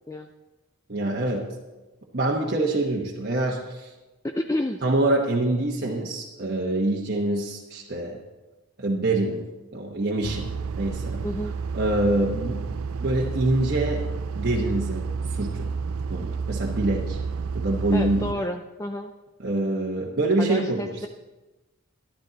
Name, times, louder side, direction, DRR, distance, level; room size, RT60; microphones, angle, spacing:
voice 1, 0.9-1.5 2.1-3.9 4.8-8.2 8.8-9.4 9.7-10.5 10.8-11.2 11.7-14.0 14.3-15.0 15.3-15.7 16.1-17.2 17.5-18.3 19.4-20.9, right 2 dB, 45° right, -3 dB, 1.1 m, -25 dB
voice 2, 4.2-4.8 11.2-11.5 17.9-19.1 20.4-21.1, left 1 dB, 15° left, 5 dB, 0.4 m, -30 dB
sound 1, 10.2-18.3, right 5 dB, 70° right, 0.4 m, -30 dB
12.0 x 12.0 x 4.0 m, 1.1 s
head